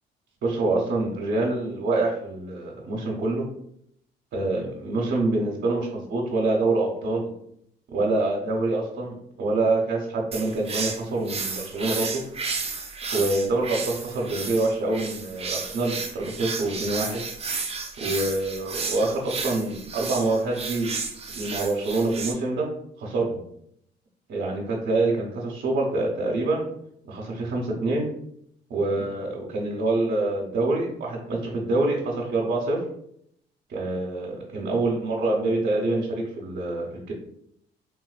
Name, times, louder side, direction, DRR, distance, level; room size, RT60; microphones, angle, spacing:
voice 1, 0.4-3.4 4.3-7.3 7.9-12.2 13.1-17.2 18.0-20.9 21.3-22.7 23.0-23.3 24.3-26.7 27.1-28.1 28.7-32.8 33.7-37.1, right 2 dB, 65° right, -3 dB, 0.8 m, -26 dB
sound 1, 10.3-22.3, right 4 dB, 30° right, 0.5 m, -33 dB
3.4 x 2.5 x 2.4 m, 0.71 s
cardioid pair, 90°, 20 cm